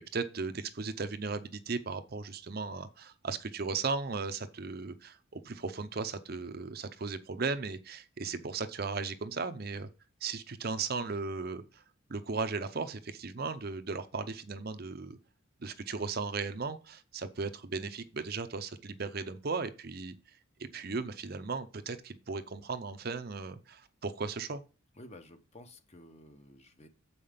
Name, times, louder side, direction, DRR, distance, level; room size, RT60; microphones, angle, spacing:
voice 1, 0.1-9.9 10.2-11.8 12.1-15.2 15.6-20.2 20.6-24.6, right 4 dB, 45° right, 9 dB, 0.6 m, -36 dB
voice 2, 25.0-26.9, left 1 dB, 30° left, 8 dB, 0.9 m, -52 dB
7.6 x 5.6 x 5.1 m, 0.33 s
head